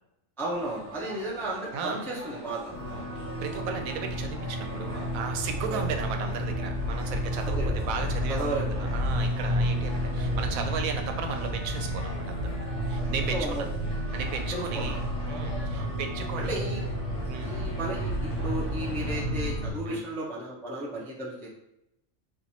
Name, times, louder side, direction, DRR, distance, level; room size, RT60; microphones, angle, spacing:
voice 1, 0.4-3.1 5.7-5.8 7.6-7.7 8.3-8.9 13.3-13.6 14.5-15.0 15.7-15.9 16.4-16.8 17.4-21.5, right 1 dB, 5° left, -4 dB, 0.3 m, -34 dB
sound 1, 0.5-19.3, equal, 30° left, 1.0 m, -43 dB
voice 2, 1.7-2.1 3.2-13.7 14.1-15.0 15.3-16.6 17.3-17.5 19.9-20.0, right 6 dB, 90° right, 6 dB, 1.0 m, -35 dB
sound 2, 2.7-19.7, equal, 50° right, 0.8 m, -31 dB
4.3 x 2.5 x 2.8 m, 0.83 s
omnidirectional pair, 1.4 m